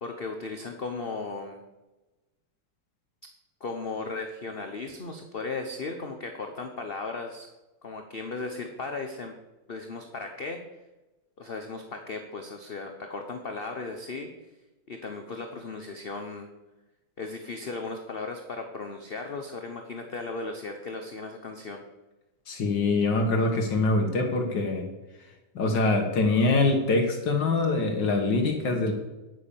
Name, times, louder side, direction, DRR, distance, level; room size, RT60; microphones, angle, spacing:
voice 1, 0.0-1.6 3.6-7.5 7.8-9.3 9.7-10.6 11.4-14.3 14.9-16.5 17.2-21.8, left 3 dB, 40° left, 5 dB, 0.9 m, -36 dB
voice 2, 22.5-24.9 25.6-28.9, left 3 dB, 65° left, 3 dB, 2.1 m, -24 dB
9.7 x 9.5 x 7.0 m, 1.1 s
omnidirectional pair, 2.1 m